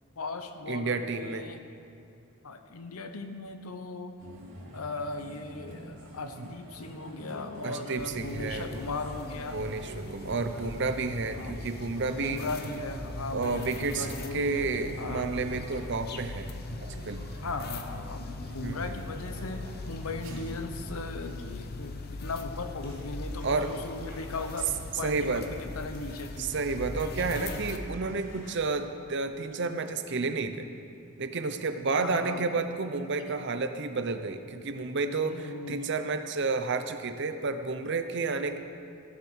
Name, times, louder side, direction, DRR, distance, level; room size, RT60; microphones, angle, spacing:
voice 1, 0.2-1.6 2.4-4.2 4.7-9.6 11.3-11.6 12.1-15.3 17.4-26.5 32.0-32.5 35.1-35.9, left 3 dB, 90° left, 7 dB, 0.9 m, -38 dB
voice 2, 0.7-1.5 6.4-6.5 7.6-8.7 9.5-12.4 13.3-14.1 14.3-16.6 17.0-17.2 18.6-19.0 23.4-23.7 25.0-25.5 26.4-30.7 31.2-38.6, right 4 dB, 55° right, 9 dB, 0.7 m, -31 dB
sound 1, 4.2-21.0, right 1 dB, 75° right, 2.7 m, -45 dB
sound 2, 8.0-27.8, left 2 dB, 45° left, 0.8 m, -40 dB
sound 3, 22.8-28.8, left 1 dB, 65° left, 2.9 m, -54 dB
15.0 x 7.4 x 6.4 m, 2.5 s
head